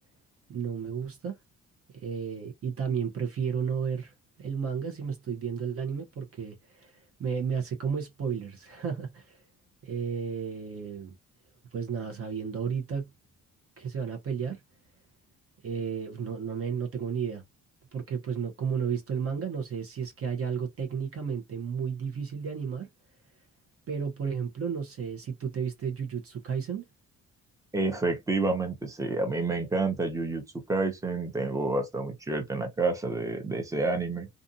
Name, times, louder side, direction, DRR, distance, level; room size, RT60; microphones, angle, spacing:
voice 1, 0.5-1.4 2.0-4.1 4.4-9.4 9.8-11.1 11.7-13.1 13.8-14.6 15.6-17.4 17.9-22.9 23.9-26.8, right 6 dB, 50° right, 0.9 m, -32 dB
voice 2, 27.7-30.4 30.7-34.3, right 3 dB, 10° right, 0.8 m, -29 dB
2.5 x 2.5 x 2.6 m
cardioid pair, 90°, 30 cm